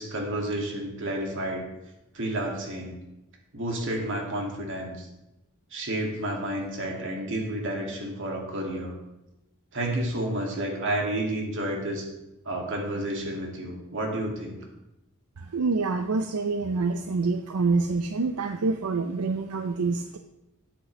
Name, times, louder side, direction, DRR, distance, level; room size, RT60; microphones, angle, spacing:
voice 1, 0.0-1.6 2.1-3.0 3.5-5.1 5.7-8.9 9.7-12.0 12.4-14.6, right 1 dB, 60° right, 0 dB, 2.3 m, -30 dB
voice 2, 15.5-20.2, right 3 dB, 85° right, 7 dB, 0.5 m, -26 dB
12.5 x 8.8 x 3.2 m, 0.94 s
head